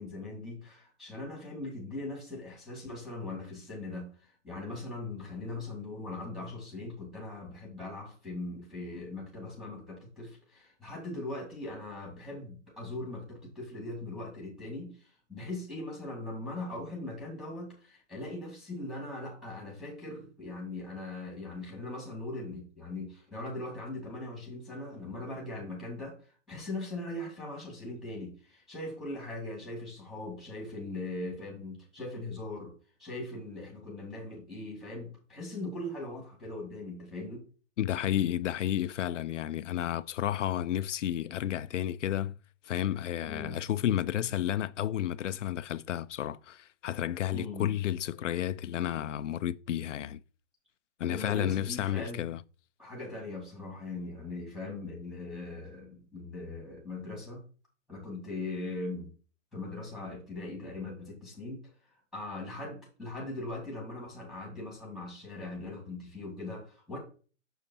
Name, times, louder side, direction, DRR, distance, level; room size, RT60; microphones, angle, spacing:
voice 1, 0.0-32.7 33.0-37.4 43.3-43.6 47.3-47.7 51.1-52.3 52.8-57.4 57.9-59.1 59.5-61.6 62.1-67.0, left 2 dB, ahead, 1.8 m, -40 dB
voice 2, 37.8-42.4 42.6-50.2 51.0-52.4, left 11 dB, 80° left, 0.5 m, -31 dB
6.9 x 6.4 x 2.7 m
hypercardioid pair, 160°, 36 cm